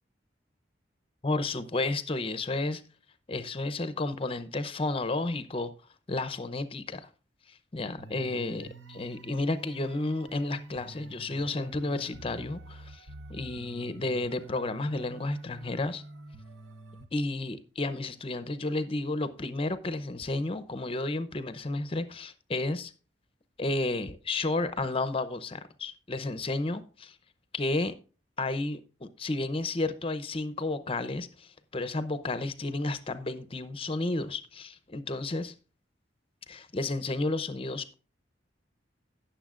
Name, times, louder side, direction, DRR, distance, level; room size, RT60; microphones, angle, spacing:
voice 1, 1.2-2.8 3.3-5.7 6.1-7.1 7.7-16.0 17.1-22.9 23.6-27.2 27.5-27.9 28.4-35.5 36.5-37.9, left 2 dB, 30° left, 0.7 m, -32 dB
sound 1, 8.0-17.1, right 2 dB, 80° right, 1.0 m, -47 dB
16.5 x 6.9 x 2.4 m
head